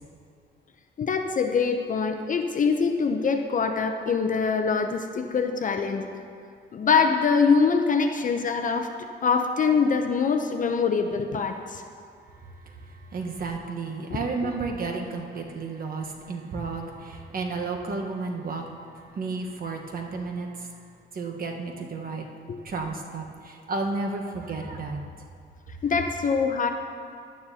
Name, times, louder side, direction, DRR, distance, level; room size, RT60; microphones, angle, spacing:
voice 1, 1.0-6.1 6.7-8.9 9.2-11.8 22.5-22.6 25.8-26.7, left 5 dB, 40° left, 5 dB, 0.6 m, -24 dB
voice 2, 12.3-20.8 21.1-22.2 22.6-25.0, right 3 dB, 50° right, 2 dB, 1.2 m, -32 dB
12.0 x 9.4 x 2.8 m, 2.4 s
cardioid pair, 90°, 20 cm